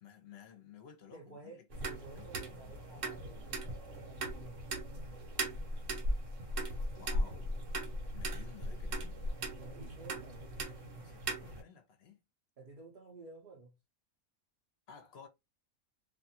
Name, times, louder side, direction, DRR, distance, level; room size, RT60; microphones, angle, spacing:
voice 1, 0.0-1.6 2.0-2.8 7.0-7.5 8.1-9.2 9.8-10.0 11.0-12.2 14.9-15.3, left 7 dB, 55° left, 0.9 m, -55 dB
voice 2, 1.1-3.5 4.1-4.8 9.6-10.6 12.6-13.8, right 3 dB, 45° right, 0.7 m, -53 dB
sound 1, 1.7-11.6, right 1 dB, 65° right, 1.1 m, -38 dB
2.6 x 2.4 x 2.7 m
omnidirectional pair, 1.5 m